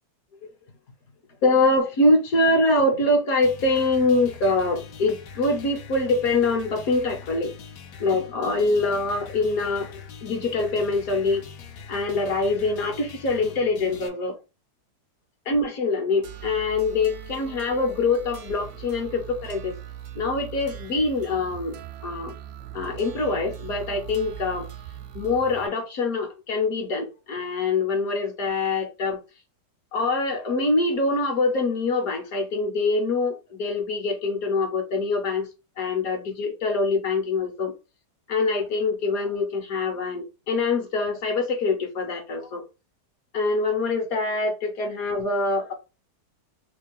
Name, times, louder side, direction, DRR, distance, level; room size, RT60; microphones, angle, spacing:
voice 1, 1.4-7.5 8.0-11.5 11.9-14.4 15.5-19.8 20.2-22.3 22.7-24.7 25.1-29.2 29.9-35.5 35.8-37.7 38.3-42.6 43.3-45.7, left 3 dB, 65° left, 1.3 m, -24 dB
sound 1, 3.4-14.1, left 6 dB, 85° left, 1.3 m, -43 dB
sound 2, 16.2-25.7, right 9 dB, 70° right, 0.7 m, -40 dB
3.2 x 2.4 x 3.5 m
omnidirectional pair, 1.8 m